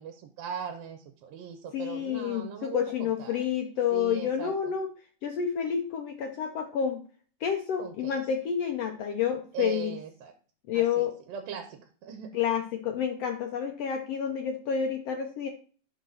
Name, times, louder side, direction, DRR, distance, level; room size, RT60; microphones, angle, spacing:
voice 1, 0.0-3.4 3.9-4.7 7.8-8.2 9.5-10.3 10.7-12.4, right 7 dB, 85° right, 6 dB, 2.7 m, -39 dB
voice 2, 1.7-4.9 5.2-7.0 7.4-9.9 10.7-11.1 12.3-15.5, left 8 dB, 85° left, 4 dB, 1.3 m, -29 dB
11.0 x 4.1 x 6.4 m, 0.42 s
omnidirectional pair, 4.1 m